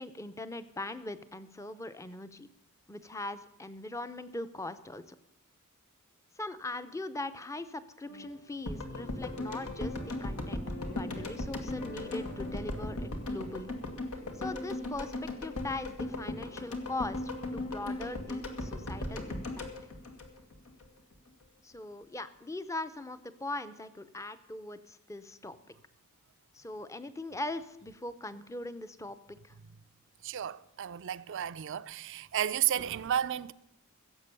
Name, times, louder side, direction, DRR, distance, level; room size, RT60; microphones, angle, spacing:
voice 1, 0.0-2.5 2.9-5.2 6.4-10.6 10.9-13.7 14.1-19.7 21.6-25.6 26.5-29.6, left 2 dB, 15° left, 0.6 m, -40 dB
sound 1, 8.0-16.5, left 2 dB, 50° left, 5.5 m, -49 dB
sound 2, 8.7-20.8 21.1-21.2, left 2 dB, 85° left, 1.8 m, -37 dB
voice 2, 30.2-33.5, right 10 dB, 60° right, 0.4 m, -32 dB
16.0 x 7.4 x 6.8 m
head